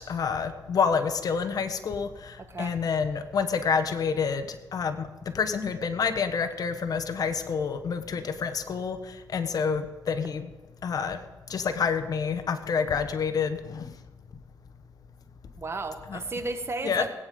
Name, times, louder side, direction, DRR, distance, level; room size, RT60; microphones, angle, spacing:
voice 1, 0.0-10.5 10.8-11.2 11.5-13.9 16.1-16.2 16.8-17.1, left 6 dB, 60° left, 10 dB, 1.2 m, -28 dB
voice 2, 15.6-17.1, right 3 dB, 35° right, 8 dB, 1.6 m, -33 dB
19.0 x 9.3 x 5.2 m, 1.2 s
cardioid pair, 75°, 7 cm